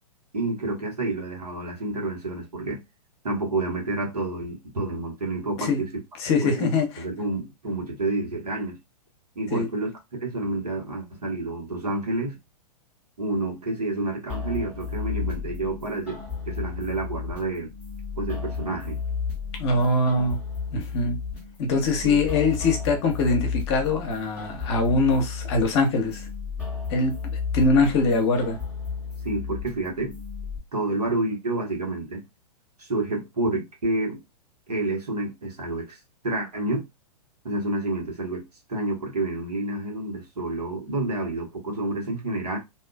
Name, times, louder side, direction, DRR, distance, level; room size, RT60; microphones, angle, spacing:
voice 1, 0.3-2.8 3.2-5.9 6.4-6.7 7.0-8.8 9.3-9.9 10.2-12.4 13.2-16.2 16.4-17.7 18.1-19.0 22.0-22.2 29.2-30.2 30.7-32.2 32.8-34.2 34.7-36.9 37.4-38.4 38.7-42.6, right 2 dB, 75° right, 1.3 m, -29 dB
voice 2, 6.2-6.9 9.5-9.7 19.6-20.4 20.7-21.2 21.6-26.2 26.9-28.6, left 3 dB, 40° left, 0.9 m, -23 dB
sound 1, 14.3-30.6, left 5 dB, 5° right, 0.9 m, -33 dB
2.7 x 2.3 x 2.4 m
figure-of-eight pair, 110°, 20 cm